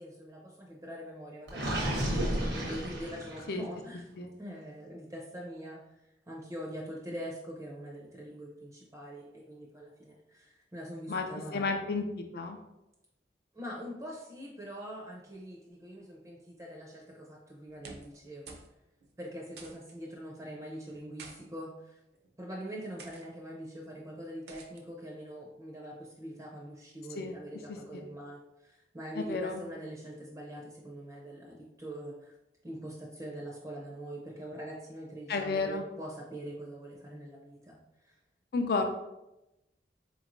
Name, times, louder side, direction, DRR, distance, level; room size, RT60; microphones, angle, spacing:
voice 1, 0.0-4.1 4.4-11.7 13.5-18.4 19.2-22.0 22.4-32.3 32.6-38.2, equal, 20° right, -2 dB, 0.5 m, -43 dB
Gurgling, 1.5-3.6, equal, 85° right, 1.0 m, -32 dB
voice 2, 11.5-12.6 27.2-27.4 27.9-28.0 29.2-29.6 35.3-35.8 38.5-38.8, left 4 dB, 60° left, 5 dB, 0.4 m, -32 dB
sound 1, 17.7-18.2 18.5-18.7 19.0-19.1 19.6-20.0 20.9-21.4 22.1-22.4 23.0-23.2 24.5-24.8, right 3 dB, 65° right, 0.6 m, -49 dB
4.3 x 3.0 x 2.5 m, 0.92 s
head